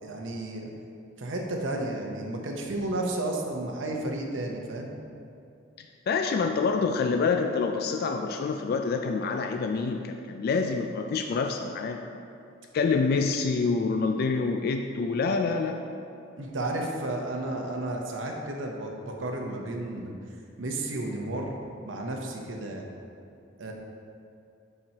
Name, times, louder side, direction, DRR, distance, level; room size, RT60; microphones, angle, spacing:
voice 1, 0.0-0.7 1.2-4.9 16.4-20.1 20.6-21.5 21.8-22.8 23.6-23.7, right 2 dB, 75° right, 1 dB, 0.8 m, -32 dB
voice 2, 6.1-12.0 12.7-15.8, left 4 dB, 55° left, 4 dB, 0.3 m, -27 dB
9.6 x 4.4 x 2.8 m, 2.6 s
head